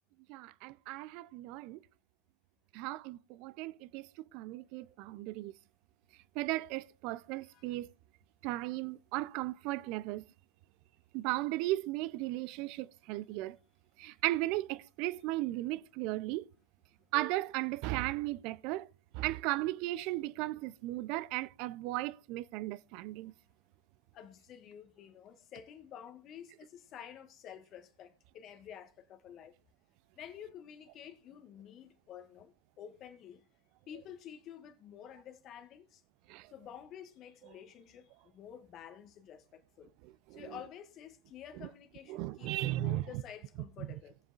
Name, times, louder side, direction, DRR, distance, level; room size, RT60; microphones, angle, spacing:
voice 1, 0.3-1.8 2.7-5.5 6.4-7.9 8.4-10.2 11.1-13.6 14.0-16.5 17.1-18.9 19.1-23.3 36.3-36.5 40.3-40.5 42.1-43.0, right 18 dB, 40° right, 0.6 m, -36 dB
voice 2, 7.4-7.8 14.0-14.1 24.1-29.5 30.1-33.5 33.9-36.0 36.5-39.9 40.3-44.2, left 9 dB, 30° left, 1.5 m, -50 dB
19.5 x 7.2 x 2.5 m
hypercardioid pair, 115°, 0 cm